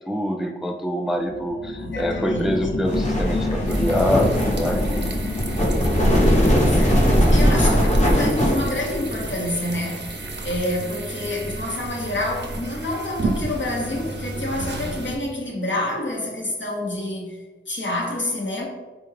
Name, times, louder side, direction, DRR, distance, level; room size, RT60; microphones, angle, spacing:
voice 1, 0.1-4.8, equal, ahead, 0.3 m, -25 dB
sound 1, 1.2-12.3 12.8-12.9, left 3 dB, 85° left, 0.5 m, -32 dB
voice 2, 1.7-2.7 6.6-18.7, left 1 dB, 65° left, 0.9 m, -28 dB
sound 2, 2.9-9.3, equal, 35° left, 0.8 m, -19 dB
sound 3, 3.7-15.2, right 2 dB, 60° right, 0.5 m, -33 dB
4.2 x 2.3 x 3.1 m
wide cardioid pair, 50°, 21 cm